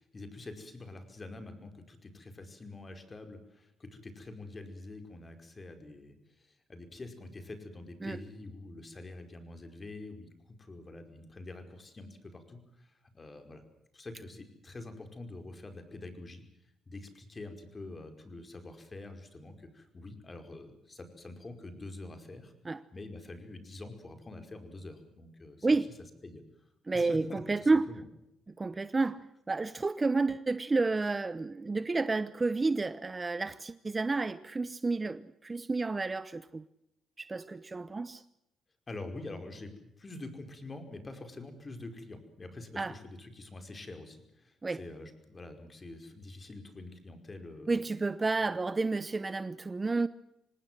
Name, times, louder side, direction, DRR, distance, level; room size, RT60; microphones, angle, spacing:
voice 1, 0.0-10.3 10.6-13.6 13.9-16.4 16.9-22.5 22.9-25.8 26.2-26.4 26.9-28.0 29.0-29.1 38.9-47.8 48.4-48.5, left 2 dB, 30° left, 5.1 m, -46 dB
voice 2, 26.9-27.9 28.6-36.6 37.2-38.2 42.8-42.9 44.6-44.8 47.7-50.1, right 3 dB, 25° right, 0.8 m, -30 dB
26.0 x 19.0 x 7.6 m
cardioid pair, 90°, 0 cm